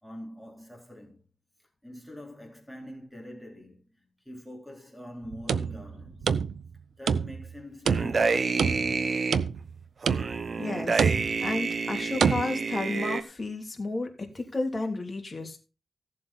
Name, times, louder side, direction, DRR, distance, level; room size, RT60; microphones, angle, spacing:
voice 1, 0.0-1.2 1.8-6.4 7.0-9.3, equal, ahead, 3.7 m, -44 dB
sound 1, 5.2-6.8 7.1-7.5 7.9-9.0 9.3-9.8 10.1-10.5 11.0-11.5 12.2-12.4, right 6 dB, 85° right, 0.6 m, -27 dB
sound 2, 7.8-9.4 10.0-13.2, right 4 dB, 50° right, 0.9 m, -29 dB
voice 2, 10.6-15.6, left 3 dB, 25° left, 3.1 m, -32 dB
16.0 x 7.5 x 4.3 m
wide cardioid pair, 100°, 0 cm